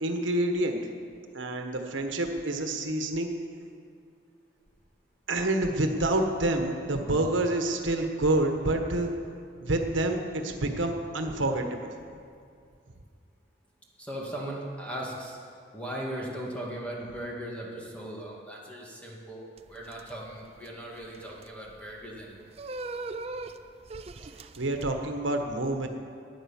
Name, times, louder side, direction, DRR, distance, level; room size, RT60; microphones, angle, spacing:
voice 1, 0.0-0.8 1.3-3.3 5.3-9.1 9.6-11.9 24.6-25.9, right 1 dB, 85° right, 4 dB, 1.3 m, -28 dB
voice 2, 14.0-22.5, right 1 dB, 5° left, -3 dB, 2.1 m, -38 dB
sound 1, 19.6-24.8, right 3 dB, 30° right, 0.5 m, -41 dB
14.0 x 9.9 x 7.2 m, 2.4 s
head